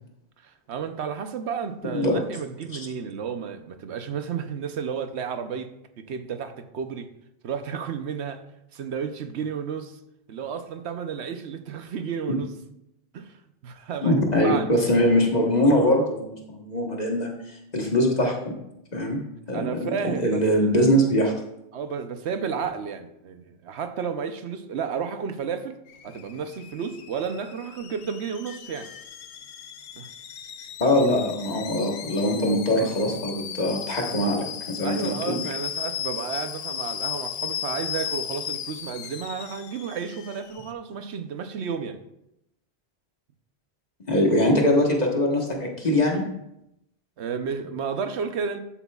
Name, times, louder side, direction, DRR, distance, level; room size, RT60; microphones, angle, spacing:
voice 1, 0.4-5.7 6.0-7.1 7.4-8.4 8.7-10.0 10.3-12.5 13.1-13.4 13.6-14.7 19.5-20.8 21.7-25.8 26.0-28.9 30.0-30.1 34.8-42.0 47.2-48.6, right 6 dB, 80° right, 8 dB, 1.0 m, -32 dB
voice 2, 14.0-18.3 18.9-19.2 19.5-21.3 30.8-35.4 44.1-46.2, left 1 dB, 40° left, 0 dB, 1.4 m, -22 dB
Alarm / Boiling, 25.9-40.7, left 9 dB, 85° left, 0.9 m, -36 dB
11.5 x 8.1 x 2.4 m, 0.84 s
omnidirectional pair, 1.1 m